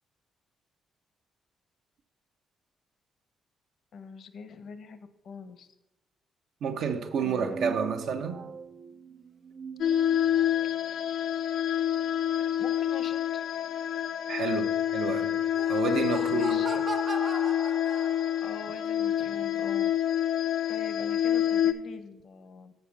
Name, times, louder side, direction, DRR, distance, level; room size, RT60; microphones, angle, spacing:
voice 1, 3.9-5.7 7.2-7.8 12.6-13.5 16.3-16.8 18.4-19.9 20.7-22.7, left 5 dB, 65° left, 0.8 m, -44 dB
voice 2, 6.6-8.5 14.3-16.6, right 6 dB, 75° right, 0.8 m, -30 dB
sound 1, 7.3-10.7, right 5 dB, 55° right, 0.3 m, -42 dB
sound 2, 9.8-21.7, left 10 dB, 80° left, 0.5 m, -27 dB
Laughter, 15.4-18.6, right 3 dB, 35° right, 0.8 m, -38 dB
6.7 x 5.1 x 7.0 m
cardioid pair, 90°, 0 cm